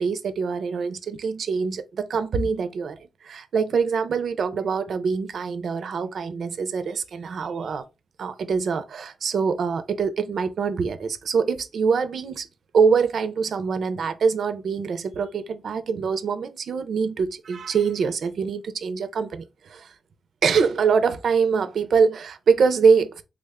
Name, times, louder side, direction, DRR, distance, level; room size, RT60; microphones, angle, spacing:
voice 1, 0.0-7.8 8.2-12.5 12.7-19.9 20.4-23.2, right 5 dB, 70° right, 0.5 m, -24 dB
3.5 x 2.1 x 3.5 m
cardioid pair, 80°, 0 cm